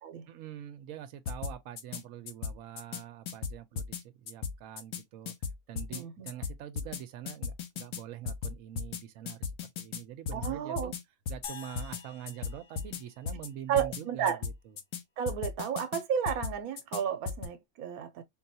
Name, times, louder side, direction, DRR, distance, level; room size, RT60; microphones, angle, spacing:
voice 1, 0.3-5.3 5.7-9.5 9.8-10.9 11.3-14.7, right 11 dB, 70° right, 0.9 m, -45 dB
sound 1, 1.3-2.0 2.3-3.0 3.3-4.0 4.3-5.0 5.3-6.0 6.3-7.0 7.3-8.0 8.3-9.0 9.3-10.0 10.3-11.0 11.3-11.5 11.8-12.0 12.3-13.0 13.3-13.5 13.8-14.0 14.3-15.0 15.3-16.0 16.3-17.0 17.3-17.5, left 6 dB, 85° left, 1.2 m, -36 dB
voice 2, 5.9-6.3 10.3-10.9 13.7-14.4 15.2-18.2, right 8 dB, 85° right, 1.1 m, -32 dB
sound 2, 11.4-13.9, left 8 dB, 60° left, 0.6 m, -48 dB
4.1 x 2.3 x 2.7 m
omnidirectional pair, 1.5 m